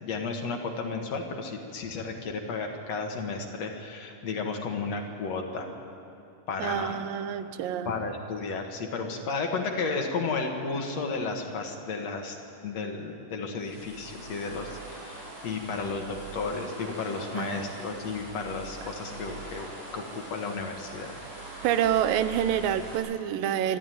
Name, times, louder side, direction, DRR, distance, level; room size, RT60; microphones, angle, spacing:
voice 1, 0.0-5.7 6.5-7.0 7.9-12.4 12.6-19.7 19.9-21.1, left 4 dB, 55° left, 2 dB, 2.5 m, -33 dB
voice 2, 6.6-7.9 17.3-17.7 21.6-23.8, right 10 dB, 85° right, 11 dB, 2.5 m, -27 dB
sound 1, 13.6-23.0, right 2 dB, 50° right, 6.1 m, -43 dB
24.5 x 13.5 x 9.3 m, 2.7 s
omnidirectional pair, 3.9 m